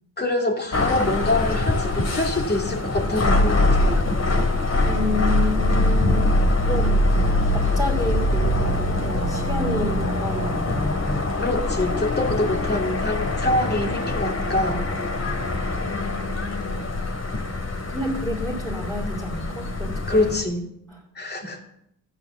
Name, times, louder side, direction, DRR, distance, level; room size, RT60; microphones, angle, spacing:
voice 1, 0.2-3.9 11.4-14.8 20.1-20.6 21.1-21.6, left 2 dB, 30° left, 2 dB, 2.7 m, -25 dB
sound 1, 0.7-20.4, left 2 dB, 45° left, 2.5 m, -23 dB
voice 2, 4.8-6.4 6.6-11.2 15.8-16.8 17.9-20.3 20.9-21.0, left 1 dB, ahead, -5 dB, 3.4 m, -30 dB
13.0 x 9.6 x 7.1 m, 0.78 s
cardioid pair, 95°, 36 cm